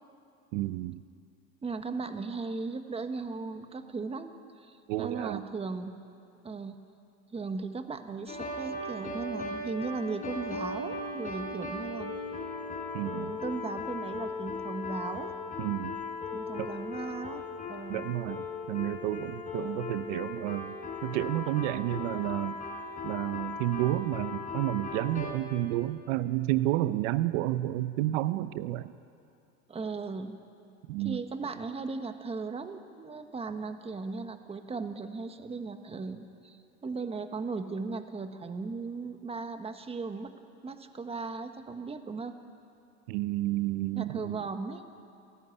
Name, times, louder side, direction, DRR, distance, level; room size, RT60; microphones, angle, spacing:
voice 1, 0.5-1.0 4.9-5.4 12.9-13.3 15.6-16.0 16.6-16.7 17.9-20.8 21.0-22.6 23.0-29.0 30.9-31.2 43.1-44.4, right 15 dB, 75° right, 13 dB, 0.9 m, -31 dB
voice 2, 1.6-6.0 6.4-6.8 7.3-12.2 13.1-15.3 16.3-18.1 19.6-19.8 29.7-30.4 31.0-40.3 40.6-42.3 43.9-44.8, right 4 dB, 15° right, 7 dB, 1.4 m, -37 dB
sound 1, 8.3-25.3, left 3 dB, 20° left, 4.7 m, -38 dB
27.0 x 17.0 x 9.7 m, 2.5 s
supercardioid pair, 135°, 38 cm